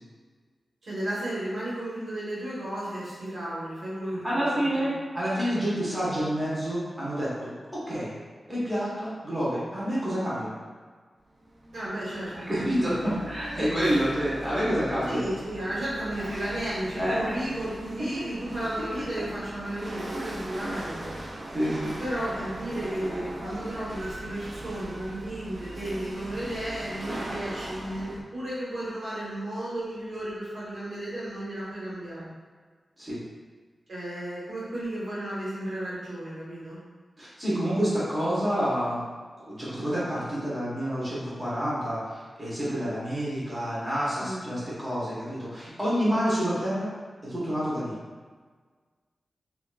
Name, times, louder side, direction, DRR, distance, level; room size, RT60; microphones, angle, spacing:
voice 1, 0.8-4.9 11.7-13.2 15.1-21.2 22.0-32.3 33.9-36.8 44.2-44.4, right 1 dB, 75° right, -9 dB, 1.3 m, -33 dB
voice 2, 4.2-8.1 8.5-10.5 12.3-15.2 17.0-17.2 20.1-20.2 21.5-22.0 33.0-33.2 37.2-39.0 39.5-46.9 47.2-47.9, equal, 15° right, -9 dB, 1.1 m, -28 dB
Chatter / Hiss / Rattle, 11.3-28.2, right 1 dB, 40° right, 0.4 m, -40 dB
3.8 x 2.4 x 2.4 m, 1.5 s
wide cardioid pair, 110°, 0 cm